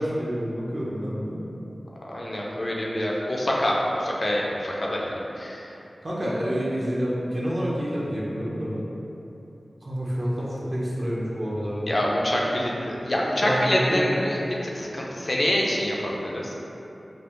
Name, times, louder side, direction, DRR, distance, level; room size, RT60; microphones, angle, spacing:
voice 1, 0.0-1.4 6.0-8.8 9.8-11.9 13.4-14.0, equal, 50° right, -6 dB, 0.8 m, -28 dB
voice 2, 2.0-5.7 11.9-16.5, left 1 dB, 50° left, -3 dB, 0.6 m, -26 dB
5.1 x 2.0 x 3.0 m, 3.0 s
wide cardioid pair, 55°, 0 cm